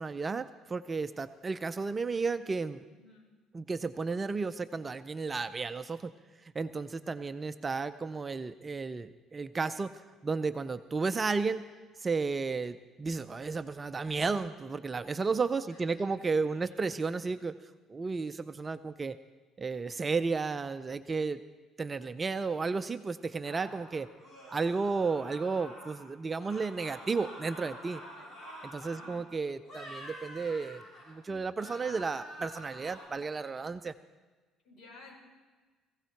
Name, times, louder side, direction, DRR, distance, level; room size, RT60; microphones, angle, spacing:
voice 1, 0.0-2.8 3.5-6.1 6.5-11.7 12.0-17.6 17.9-19.2 19.6-21.4 21.8-24.1 24.5-28.0 28.7-33.9, right 4 dB, 25° right, 10 dB, 0.5 m, -33 dB
voice 2, 2.9-3.3 15.7-16.8 28.1-28.3 28.9-29.2 34.6-35.1, left 2 dB, 50° left, -1 dB, 6.1 m, -56 dB
sound 1, 23.4-26.1 26.4-29.2 29.6-31.2 31.5-33.1, equal, 35° left, 5.3 m, -48 dB
18.5 x 16.0 x 4.6 m, 1.3 s
cardioid pair, 125°, 0 cm